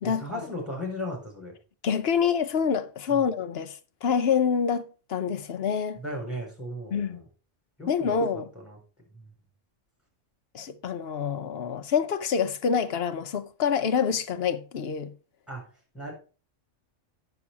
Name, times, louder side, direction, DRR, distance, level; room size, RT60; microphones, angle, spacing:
voice 1, 0.0-1.5 3.1-3.2 6.0-7.2 7.8-8.8 9.1-9.3 15.5-15.7 15.9-16.1, equal, ahead, 4.6 m, -37 dB
voice 2, 1.8-6.0 6.9-7.2 7.9-8.5 10.5-15.1, left 7 dB, 60° left, 0.9 m, -26 dB
8.5 x 6.9 x 4.7 m
omnidirectional pair, 1.3 m